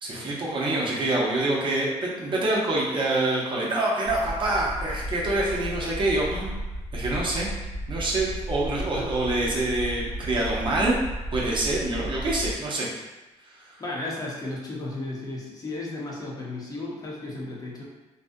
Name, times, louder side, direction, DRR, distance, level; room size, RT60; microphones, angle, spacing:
voice 1, 0.0-6.5 6.9-7.5 7.9-11.0 11.3-12.9 13.6-13.8, right 2 dB, 40° right, -5 dB, 0.6 m, -26 dB
sound 1, 4.0-12.6, equal, 75° left, 0.9 m, -34 dB
voice 2, 13.8-17.8, left 2 dB, 30° left, -4 dB, 0.8 m, -34 dB
2.6 x 2.3 x 2.5 m, 1.1 s
cardioid pair, 85°, 12 cm